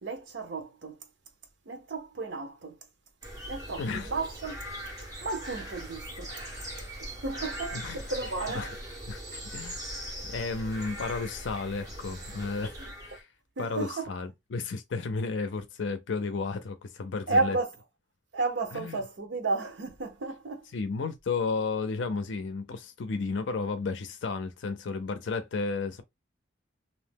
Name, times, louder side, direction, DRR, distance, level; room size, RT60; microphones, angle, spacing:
voice 1, 0.0-1.0 1.7-2.7 3.5-4.6 5.2-6.3 7.2-8.7 12.8-12.9 13.6-14.1 17.3-17.7 18.3-20.6, right 3 dB, 85° right, 0.8 m, -32 dB
sound 1, 3.2-13.2, right 1 dB, 20° right, 1.0 m, -40 dB
voice 2, 3.8-4.1 7.7-8.0 8.5-8.7 9.1-9.8 10.3-12.8 13.0-13.3 13.6-17.6 18.7-19.0 20.7-26.0, left 4 dB, 85° left, 0.5 m, -33 dB
2.6 x 2.0 x 3.3 m
head